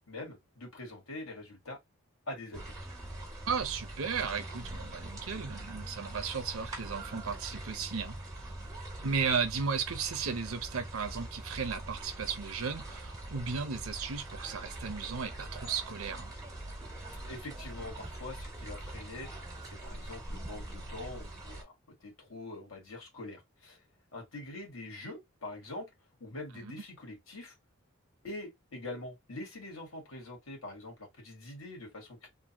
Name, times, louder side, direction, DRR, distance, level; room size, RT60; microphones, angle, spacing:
voice 1, 0.0-1.8 2.3-2.8 17.2-19.3 19.7-21.8 22.0-23.8 24.1-25.9 26.2-27.6 28.2-32.3, left 2 dB, 85° left, 1.7 m, -44 dB
sound 1, 2.5-21.6, right 1 dB, 15° right, 1.5 m, -43 dB
voice 2, 3.4-8.2 9.0-16.3 26.6-26.7, right 5 dB, 85° right, 0.7 m, -35 dB
3.7 x 2.1 x 2.9 m
head